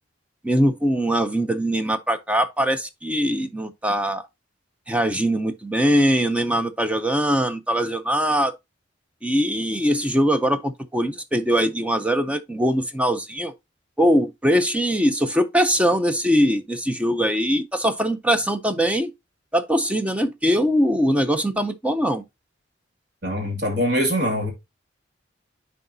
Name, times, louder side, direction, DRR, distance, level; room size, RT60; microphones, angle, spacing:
voice 1, 0.4-4.3 4.9-8.5 9.2-13.5 14.0-19.1 19.5-22.2, equal, 5° right, 0.5 m, -21 dB
voice 2, 23.2-24.5, equal, 55° right, 2.2 m, -23 dB
9.7 x 4.7 x 2.6 m
head